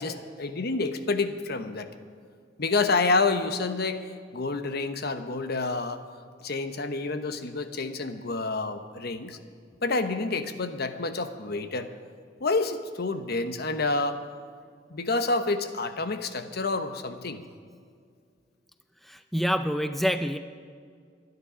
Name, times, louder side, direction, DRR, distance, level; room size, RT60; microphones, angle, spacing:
voice 1, 0.0-1.9 2.6-4.0 4.3-6.0 6.4-9.4 9.8-11.9 12.4-14.2 14.9-17.4, left 3 dB, 60° left, 9 dB, 0.9 m, -28 dB
voice 2, 19.1-20.4, equal, ahead, 9 dB, 0.4 m, -27 dB
24.5 x 9.7 x 5.0 m, 2.1 s
head